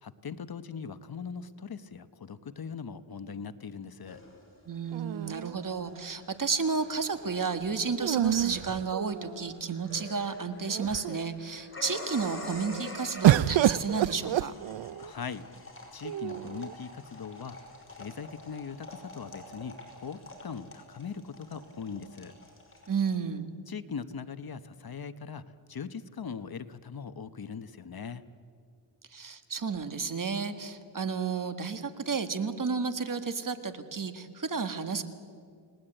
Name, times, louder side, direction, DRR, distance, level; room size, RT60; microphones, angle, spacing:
voice 1, 0.0-4.2 15.0-15.5 15.9-17.6 17.9-22.3 23.7-25.4 25.7-28.2, left 6 dB, 50° left, 12 dB, 1.0 m, -40 dB
sound 1, 4.1-23.2, left 1 dB, 25° left, 5.5 m, -47 dB
voice 2, 4.7-14.5 22.9-23.5 29.1-35.0, right 5 dB, 45° right, 9 dB, 1.7 m, -32 dB
sound 2, 4.9-6.0 8.0-9.5 10.3-10.4 10.7-11.3 13.2-15.1 16.0-16.7, right 12 dB, 75° right, 0.6 m, -27 dB
29.5 x 19.5 x 8.9 m, 2.2 s
wide cardioid pair, 100°, 45 cm